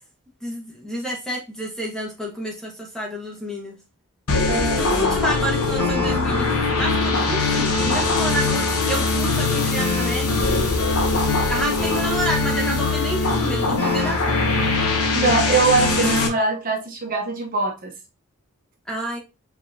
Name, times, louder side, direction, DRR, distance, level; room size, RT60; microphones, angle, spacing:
voice 1, 0.4-3.7 4.8-6.5 6.8-10.4 11.5-14.4 18.9-19.2, right 1 dB, 5° left, -1 dB, 1.2 m, -29 dB
sound 1, 4.3-16.3, left 3 dB, 85° left, 1.1 m, -21 dB
voice 2, 4.5-5.2 15.1-17.9, right 3 dB, 40° right, 1 dB, 1.0 m, -22 dB
4.7 x 3.6 x 2.7 m, 0.27 s
head